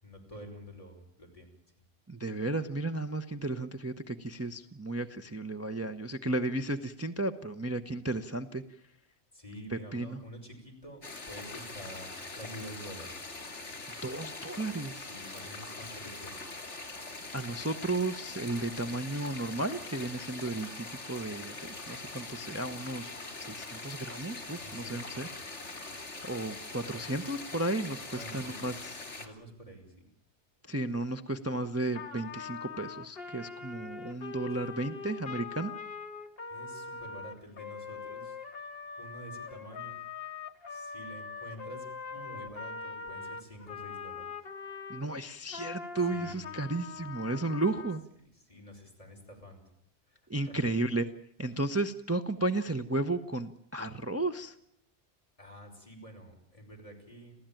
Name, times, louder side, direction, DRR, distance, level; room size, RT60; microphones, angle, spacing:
voice 1, 0.0-1.9 9.3-11.0 11.3-13.4 15.0-16.4 24.6-25.4 25.9-26.0 28.1-28.7 29.2-30.1 34.5-34.7 36.5-38.4 39.0-39.9 40.7-44.2 46.1-47.0 48.3-49.6 50.1-50.7 55.4-57.4, equal, 30° left, 1 dB, 5.8 m, -48 dB
voice 2, 2.1-8.6 9.7-10.2 14.0-15.1 17.3-25.3 26.2-28.9 30.7-35.7 44.9-48.0 50.3-51.1 51.4-54.5, right 2 dB, 15° right, 7 dB, 0.8 m, -34 dB
sound 1, 11.0-29.3, left 3 dB, 90° left, 3.1 m, -43 dB
Trumpet, 31.9-45.0 45.5-48.0, left 5 dB, 55° left, 1.7 m, -42 dB
27.0 x 16.0 x 9.1 m, 0.74 s
omnidirectional pair, 1.2 m